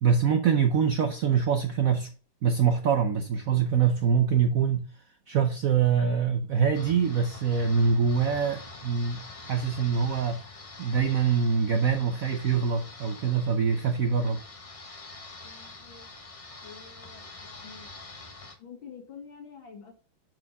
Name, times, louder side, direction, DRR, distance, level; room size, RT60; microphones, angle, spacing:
voice 1, 0.0-2.1 2.4-4.9 5.3-9.2 9.5-10.4 10.8-14.4, right 6 dB, 70° right, 0.8 m, -24 dB
voice 2, 4.2-4.6 13.9-14.4 15.4-16.1 16.6-17.9 18.6-19.9, left 6 dB, 75° left, 2.5 m, -48 dB
sound 1, 6.7-18.6, left 3 dB, 45° left, 0.4 m, -45 dB
6.5 x 4.4 x 5.4 m
omnidirectional pair, 2.2 m